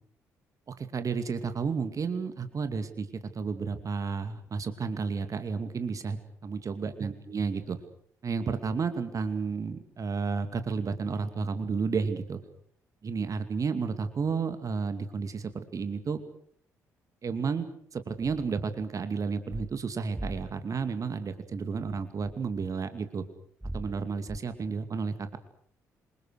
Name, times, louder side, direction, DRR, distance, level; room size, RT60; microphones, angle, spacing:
voice 1, 0.7-7.8 8.2-12.4 13.0-16.2 17.2-23.2 23.7-25.4, right 5 dB, 40° right, 10 dB, 2.4 m, -32 dB
sound 1, 18.2-18.5 19.5-19.7 20.2-20.6 21.8-22.7 23.6-24.4, right 1 dB, 10° right, 1.0 m, -40 dB
27.0 x 23.5 x 6.5 m, 0.62 s
figure-of-eight pair, 45°, 9 cm